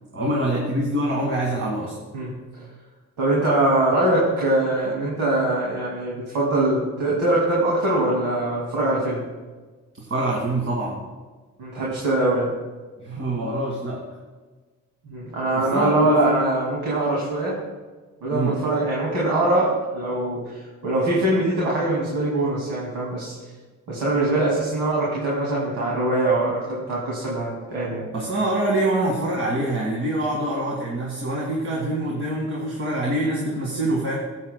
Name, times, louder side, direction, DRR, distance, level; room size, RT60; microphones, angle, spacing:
voice 1, 0.1-1.9 10.1-11.0 13.0-14.0 15.5-16.3 18.3-18.6 28.1-34.1, right 1 dB, 45° right, -3 dB, 1.8 m, -25 dB
voice 2, 3.2-9.2 11.6-12.5 15.1-17.5 18.2-20.6 20.8-23.3 23.9-28.0, right 2 dB, 85° right, -5 dB, 2.3 m, -22 dB
14.5 x 7.7 x 2.2 m, 1.3 s
cardioid pair, 90°, 30 cm